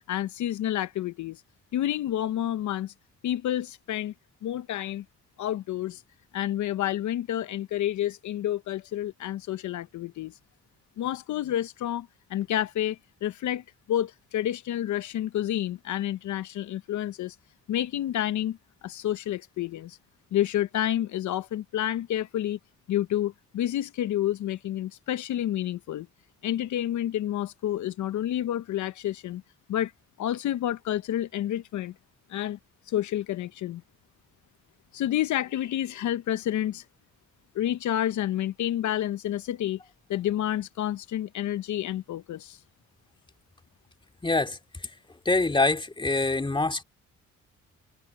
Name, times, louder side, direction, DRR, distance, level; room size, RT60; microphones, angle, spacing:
voice 1, 0.1-1.4 1.7-2.9 3.2-4.1 4.4-5.0 5.4-6.0 6.3-10.4 11.0-17.4 17.7-20.0 20.3-22.6 22.9-26.1 26.4-29.4 29.7-29.9 30.2-31.9 32.3-32.6 32.9-33.8 34.9-36.8 37.5-39.8 40.1-42.6, left 12 dB, 70° left, 0.9 m, -29 dB
voice 2, 44.2-44.6 45.2-46.8, left 3 dB, 15° left, 2.5 m, -24 dB
cardioid pair, 90°, 30 cm